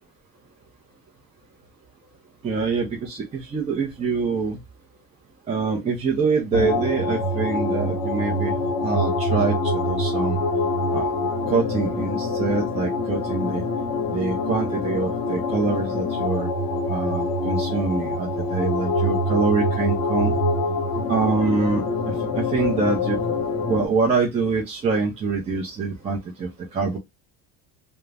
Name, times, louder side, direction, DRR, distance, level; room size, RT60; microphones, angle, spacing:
voice 1, 2.4-4.6 5.5-8.5 8.8-10.4 10.9-11.1 11.5-13.7 14.1-16.5 16.9-20.4 21.1-23.2 23.7-27.0, right 4 dB, 15° right, -2 dB, 0.4 m, -25 dB
sound 1, 6.5-23.9, left 2 dB, 60° left, 1.0 m, -25 dB
2.4 x 2.0 x 3.2 m, 0.19 s
cardioid pair, 150°, 40 cm